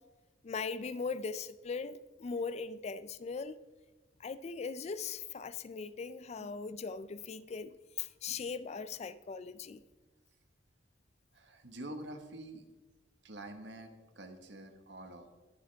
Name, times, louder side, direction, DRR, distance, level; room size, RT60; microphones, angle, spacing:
voice 1, 0.4-3.6 4.2-9.8, left 5 dB, 35° left, 0.3 m, -39 dB
voice 2, 11.3-12.7 13.2-15.3, right 1 dB, 65° right, 1.4 m, -47 dB
21.5 x 7.3 x 3.4 m
head